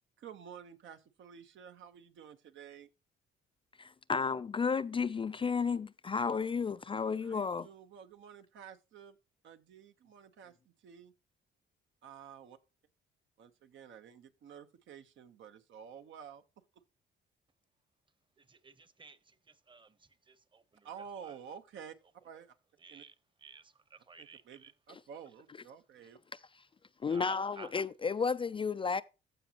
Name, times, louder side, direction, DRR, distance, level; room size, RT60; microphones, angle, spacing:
voice 1, 0.2-2.9 7.2-9.2 9.4-11.1 12.0-12.6 13.4-16.4 20.8-22.0 22.2-22.6 22.9-23.0 24.2-26.2, right 7 dB, 70° right, 1.0 m, -51 dB
voice 2, 3.8-7.7 24.9-25.0 26.3-26.6 27.0-29.0, left 5 dB, 25° left, 0.3 m, -33 dB
voice 3, 18.4-20.9 21.2-21.3 22.8-24.7 27.0-27.7, right 4 dB, 25° right, 1.0 m, -55 dB
14.5 x 5.1 x 2.9 m
cardioid pair, 90°, 20 cm